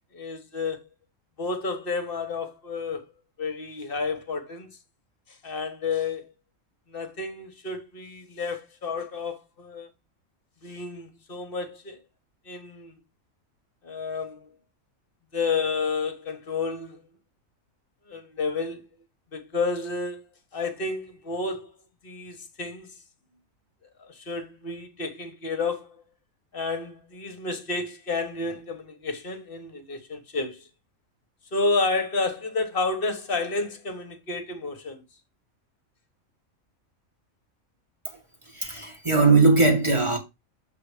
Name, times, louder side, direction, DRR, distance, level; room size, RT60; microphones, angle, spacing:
voice 1, 0.1-0.8 1.4-3.0 3.4-4.7 5.3-6.3 6.9-9.9 10.6-12.0 12.4-13.0 13.8-14.5 15.3-17.0 18.1-18.9 19.3-20.3 20.5-21.7 22.0-22.9 24.0-26.0 26.5-30.7 31.5-35.0, left 4 dB, 45° left, 1.5 m, -30 dB
voice 2, 38.6-40.2, right 3 dB, 20° right, 1.8 m, -19 dB
7.7 x 3.8 x 4.9 m
omnidirectional pair, 1.4 m